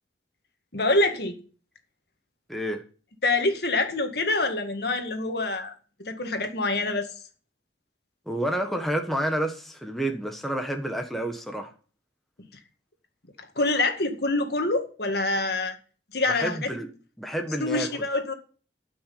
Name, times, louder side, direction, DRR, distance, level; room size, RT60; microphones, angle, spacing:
voice 1, 0.7-1.4 3.2-5.7 6.0-7.1 12.4-12.5 13.4-15.8 16.1-16.6 17.6-18.3, left 2 dB, 60° left, 6 dB, 2.0 m, -26 dB
voice 2, 2.5-2.8 8.3-11.7 16.3-16.9 17.2-17.9, right 1 dB, ahead, 3 dB, 1.4 m, -29 dB
12.5 x 6.2 x 9.4 m, 0.39 s
head